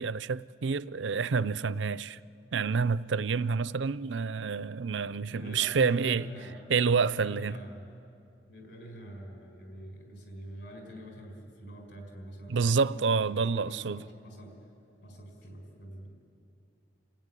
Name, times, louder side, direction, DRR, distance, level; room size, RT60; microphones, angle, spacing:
voice 1, 0.0-2.2 2.5-6.2 6.7-7.5 12.5-14.0, right 5 dB, 85° right, 0.5 m, -28 dB
voice 2, 5.3-6.7 7.0-7.9 8.5-14.6 15.0-16.1, equal, 70° left, 5.2 m, -45 dB
28.5 x 16.0 x 9.9 m
head